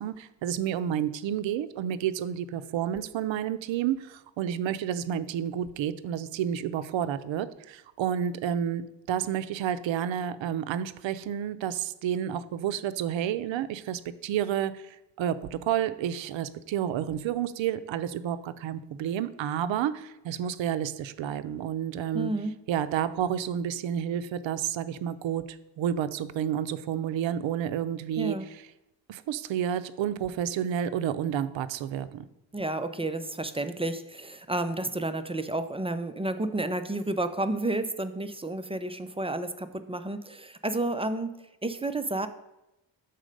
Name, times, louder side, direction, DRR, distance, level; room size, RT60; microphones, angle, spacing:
voice 1, 0.0-22.3 22.7-28.4 29.1-32.3, right 9 dB, 75° right, 13 dB, 0.6 m, -30 dB
voice 2, 22.1-22.5 28.2-28.5 32.5-41.3 41.6-42.3, right 2 dB, 15° right, 9 dB, 0.4 m, -31 dB
6.3 x 4.1 x 5.2 m, 0.92 s
cardioid pair, 80°, 46 cm